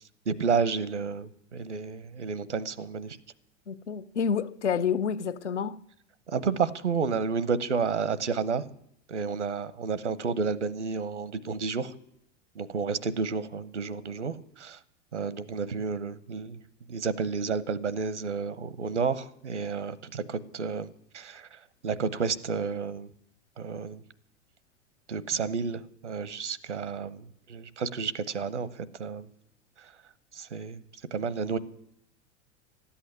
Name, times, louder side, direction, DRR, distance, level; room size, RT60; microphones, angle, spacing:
voice 1, 0.3-3.2 6.3-8.6 9.1-11.9 12.6-14.8 15.1-16.6 16.9-20.9 21.1-21.5 21.8-23.1 23.6-24.0 25.1-28.7 29.0-29.3 30.4-30.8 31.1-31.6, right 5 dB, 75° right, 0.9 m, -31 dB
voice 2, 3.7-5.8, left 7 dB, 75° left, 0.7 m, -29 dB
13.0 x 8.6 x 10.0 m
figure-of-eight pair, 90°, 35 cm